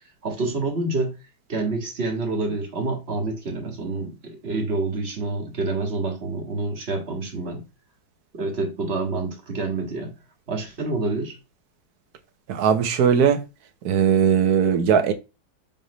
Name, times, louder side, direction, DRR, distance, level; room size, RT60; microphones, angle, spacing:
voice 1, 0.2-1.2 1.5-7.6 8.3-10.1 10.5-11.4, right 3 dB, 35° right, 1.8 m, -27 dB
voice 2, 12.5-13.4 13.8-15.1, right 7 dB, 60° right, 1.2 m, -19 dB
5.8 x 3.5 x 5.3 m
omnidirectional pair, 2.1 m